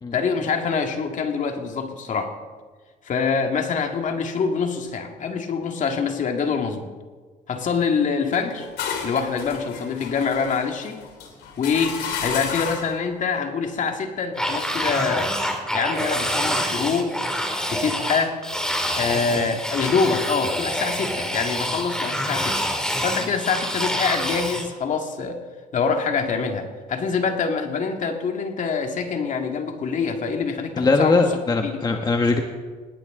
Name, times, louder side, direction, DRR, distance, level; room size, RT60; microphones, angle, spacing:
voice 1, 0.1-2.4 3.0-6.9 7.5-8.7 9.0-11.1 11.6-15.3 15.7-17.1 17.7-18.4 18.9-22.6 23.0-25.4 25.7-31.3 31.6-31.8, left 5 dB, 50° left, 4 dB, 2.1 m, -25 dB
sound 1, 8.3-13.0, left 7 dB, 80° left, 3.2 m, -32 dB
sound 2, 14.4-24.7, equal, 5° left, 2.6 m, -26 dB
voice 2, 30.8-32.4, left 3 dB, 25° left, 4 dB, 1.4 m, -20 dB
20.0 x 17.5 x 3.8 m, 1.4 s
cardioid pair, 110°, 17 cm